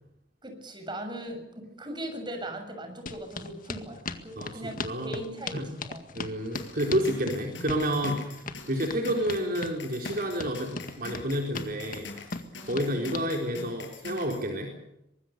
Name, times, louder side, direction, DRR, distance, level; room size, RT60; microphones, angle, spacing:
voice 1, 0.4-6.0 12.6-13.0, right 1 dB, 25° right, 5 dB, 6.6 m, -39 dB
sound 1, 3.1-13.3, left 3 dB, 50° left, 2.0 m, -38 dB
voice 2, 4.4-5.1 5.5-5.7 6.1-12.1 12.7-14.7, equal, 50° right, 1 dB, 4.1 m, -30 dB
sound 2, 6.5-14.4, left 3 dB, 75° left, 6.7 m, -44 dB
24.5 x 20.5 x 6.8 m, 0.81 s
head